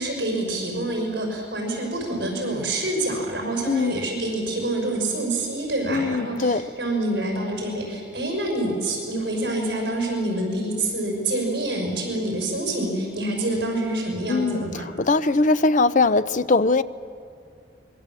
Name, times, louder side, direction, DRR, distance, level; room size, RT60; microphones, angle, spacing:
voice 1, 0.0-14.9, right 1 dB, 60° right, 1 dB, 5.9 m, -27 dB
voice 2, 3.7-4.0 5.9-6.6 14.3-14.6 15.0-16.8, left 3 dB, 40° left, 14 dB, 0.6 m, -20 dB
25.0 x 22.5 x 7.6 m, 2.4 s
head